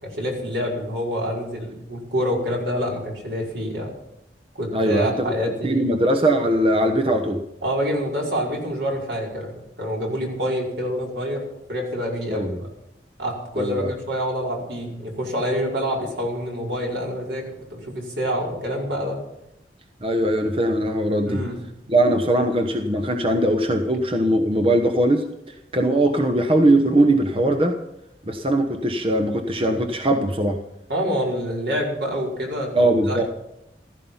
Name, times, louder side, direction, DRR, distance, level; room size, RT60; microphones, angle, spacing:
voice 1, 0.0-3.9 4.6-5.9 7.6-11.4 11.7-12.6 13.2-17.4 17.7-19.2 21.3-21.6 30.9-33.3, equal, 80° right, -2 dB, 5.3 m, -27 dB
voice 2, 4.7-5.3 5.6-7.4 12.3-12.5 13.6-13.9 20.0-21.4 21.9-27.8 28.2-30.6 32.8-33.2, right 1 dB, 30° right, 5 dB, 1.1 m, -20 dB
15.5 x 14.5 x 5.7 m, 0.84 s
head